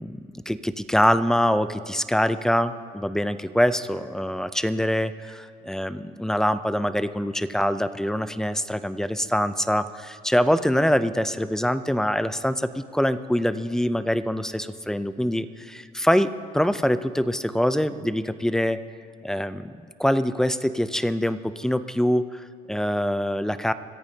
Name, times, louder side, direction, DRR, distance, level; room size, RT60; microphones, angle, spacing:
voice 1, 0.0-18.8 19.2-19.7 20.0-23.7, equal, 5° left, 12 dB, 0.5 m, -24 dB
25.5 x 14.0 x 2.8 m, 2.3 s
cardioid pair, 110°, 17 cm